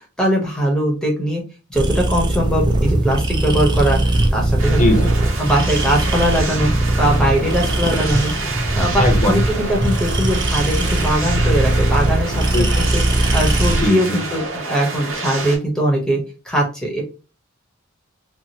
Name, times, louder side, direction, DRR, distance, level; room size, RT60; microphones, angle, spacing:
voice 1, 0.2-1.4 1.7-4.8 5.4-6.7 7.0-8.3 8.7-12.4 12.7-16.2 16.4-17.0, equal, 5° left, -1 dB, 0.8 m, -20 dB
sound 1, 1.7-13.9, right 1 dB, 20° right, 0.3 m, -19 dB
sound 2, 4.6-15.6, right 3 dB, 65° right, 0.8 m, -28 dB
voice 2, 4.8-5.1 9.0-9.4 12.5-12.7 13.8-14.0, left 1 dB, 40° left, 3 dB, 0.7 m, -17 dB
2.6 x 2.4 x 2.8 m, 0.34 s
head